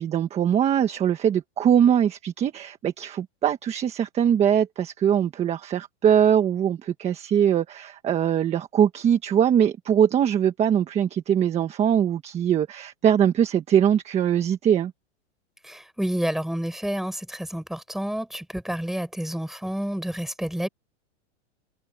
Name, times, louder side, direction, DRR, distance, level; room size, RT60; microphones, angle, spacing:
voice 1, 0.0-14.9, right 9 dB, 20° right, 1.5 m, -22 dB
voice 2, 15.6-20.7, equal, ahead, 6.5 m, -29 dB
supercardioid pair, 160°, 35 cm